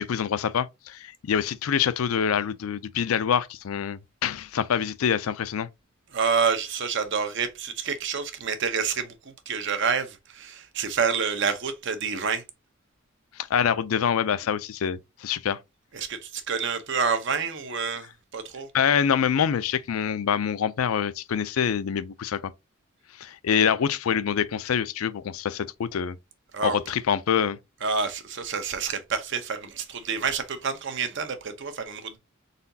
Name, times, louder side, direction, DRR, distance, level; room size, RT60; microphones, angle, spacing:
voice 1, 0.0-5.7 13.5-15.6 18.7-22.4 23.2-26.2 26.6-27.6, left 8 dB, 80° left, 0.4 m, -25 dB
voice 2, 6.1-12.4 15.9-18.1 18.3-18.7 26.5-26.8 27.8-32.2, right 5 dB, 60° right, 0.8 m, -28 dB
4.1 x 3.9 x 2.7 m
head